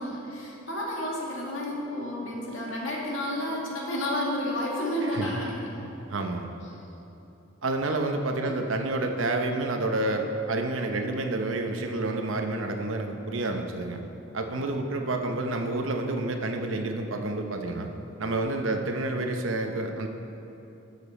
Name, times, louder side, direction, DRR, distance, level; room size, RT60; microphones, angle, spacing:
voice 1, 0.0-5.6 8.5-8.6, left 1 dB, 70° left, -3 dB, 1.9 m, -31 dB
voice 2, 5.0-5.5 6.1-6.5 7.6-14.0 14.3-17.9 18.2-20.1, right 2 dB, 75° right, 4 dB, 0.8 m, -29 dB
12.0 x 6.8 x 4.2 m, 3.0 s
head